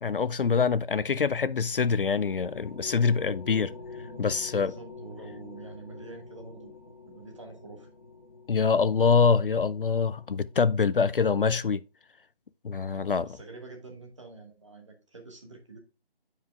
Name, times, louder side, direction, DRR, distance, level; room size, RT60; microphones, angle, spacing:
voice 1, 0.0-3.7 4.2-4.7 8.5-11.8 12.6-13.3, left 5 dB, 65° left, 0.4 m, -25 dB
sound 1, 1.3-11.1, left 4 dB, 30° left, 1.8 m, -46 dB
voice 2, 4.6-6.7 7.1-7.9 12.9-15.8, right 3 dB, 30° right, 1.2 m, -46 dB
8.4 x 4.8 x 3.4 m
figure-of-eight pair, 170°, 30 cm